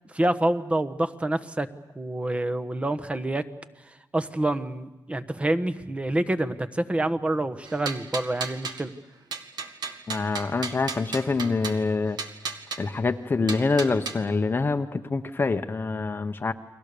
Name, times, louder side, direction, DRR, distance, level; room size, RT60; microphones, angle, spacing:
voice 1, 0.1-1.7 2.0-3.4 4.1-8.9, right 1 dB, 15° right, 10 dB, 1.3 m, -27 dB
sound 1, 7.6-8.8 9.3-11.8 12.2-12.8 13.5-14.2, right 5 dB, 70° right, 1.9 m, -34 dB
voice 2, 10.1-12.2 12.8-16.5, left 3 dB, 30° left, 7 dB, 0.9 m, -26 dB
30.0 x 22.5 x 6.9 m, 1.1 s
cardioid pair, 110°, 7 cm